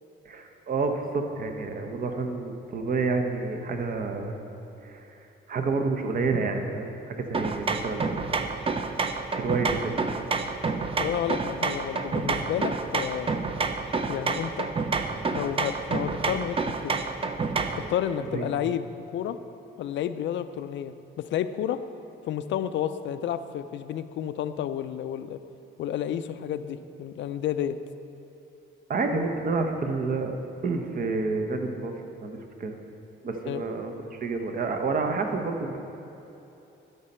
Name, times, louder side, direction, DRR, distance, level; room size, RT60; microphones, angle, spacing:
voice 1, 0.2-4.3 4.8-5.2 5.5-8.1 9.4-9.9 18.3-18.5 28.9-30.3 30.6-32.0 32.2-32.7 33.2-35.8, right 3 dB, 45° right, 5 dB, 0.8 m, -29 dB
sound 1, 7.3-17.9, right 4 dB, 30° right, 0.5 m, -29 dB
voice 2, 11.0-13.3 14.1-14.7 15.3-17.0 17.8-18.9 19.1-19.4 19.8-21.8 22.2-25.4 25.8-27.8 33.5-33.6, left 10 dB, 70° left, 12 dB, 0.4 m, -31 dB
12.5 x 5.4 x 4.3 m, 3.0 s
cardioid pair, 90°, 20 cm